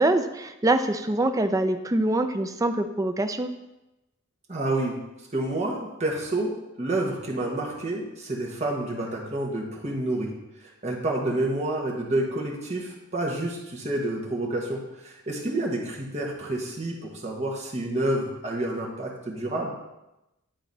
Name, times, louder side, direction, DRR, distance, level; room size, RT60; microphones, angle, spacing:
voice 1, 0.0-3.5, right 2 dB, 15° right, 8 dB, 0.4 m, -24 dB
voice 2, 4.5-5.0 5.3-10.3 10.8-19.7, right 1 dB, 30° right, -2 dB, 1.3 m, -29 dB
10.0 x 4.0 x 4.0 m, 0.95 s
head